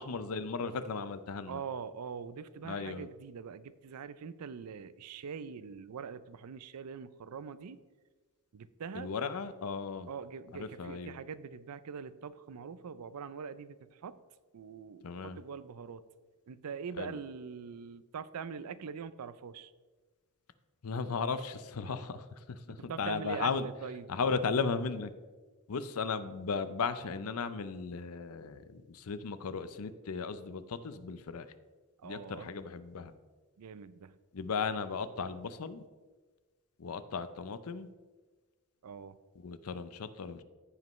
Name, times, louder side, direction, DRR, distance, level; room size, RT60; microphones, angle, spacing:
voice 1, 0.0-1.6 2.6-3.1 9.0-10.1 10.5-11.2 15.0-15.4 17.0-17.1 20.8-23.6 24.1-25.1 25.7-31.5 32.0-33.1 34.3-35.8 36.8-37.9 39.4-40.4, left 5 dB, 75° left, 13 dB, 0.5 m, -36 dB
voice 2, 1.5-7.8 8.5-9.1 10.1-14.2 14.5-16.0 16.5-19.7 22.7-24.1 32.0-32.5 33.6-34.2 38.8-39.2, right 6 dB, 90° right, 15 dB, 0.4 m, -43 dB
14.5 x 5.3 x 3.1 m, 1.3 s
head